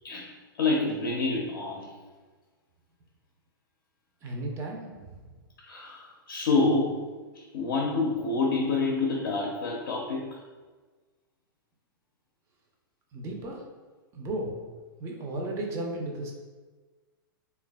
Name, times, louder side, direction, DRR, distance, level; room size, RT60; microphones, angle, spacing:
voice 1, 0.6-1.9 5.6-7.1 7.3-10.4, left 3 dB, 60° left, -2 dB, 0.5 m, -27 dB
voice 2, 4.2-5.3 13.1-13.6 14.1-14.6 15.0-16.3, right 1 dB, 25° right, 0 dB, 0.4 m, -34 dB
3.1 x 2.2 x 2.2 m, 1.3 s
figure-of-eight pair, 105°, 12 cm